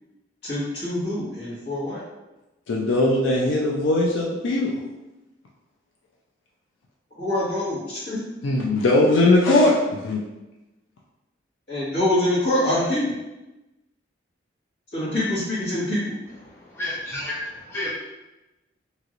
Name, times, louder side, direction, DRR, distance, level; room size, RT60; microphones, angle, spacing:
voice 1, 0.4-2.0 7.2-8.2 11.7-13.1 14.9-16.2, left 1 dB, 60° left, -9 dB, 1.5 m, -25 dB
voice 2, 2.7-4.7 8.4-10.2, left 2 dB, 90° left, -2 dB, 0.5 m, -20 dB
voice 3, 16.4-17.9, left 1 dB, 10° left, -7 dB, 0.5 m, -31 dB
3.0 x 2.9 x 2.5 m, 1.0 s
head